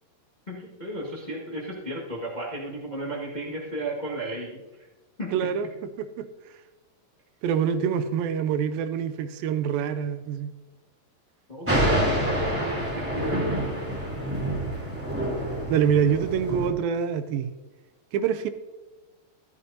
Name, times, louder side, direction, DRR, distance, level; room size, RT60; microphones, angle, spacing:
voice 1, 0.5-4.9 5.2-5.5 11.5-12.4 12.8-13.4 13.8-14.0, right 1 dB, 75° left, -5 dB, 0.4 m, -34 dB
voice 2, 5.3-5.7 6.0-6.3 7.4-10.5 15.7-17.5 18.1-18.5, right 8 dB, 80° right, 11 dB, 2.3 m, -25 dB
Thunder, 11.7-16.7, right 1 dB, 5° right, 2.6 m, -27 dB
14.0 x 12.5 x 2.8 m, 1.1 s
omnidirectional pair, 4.2 m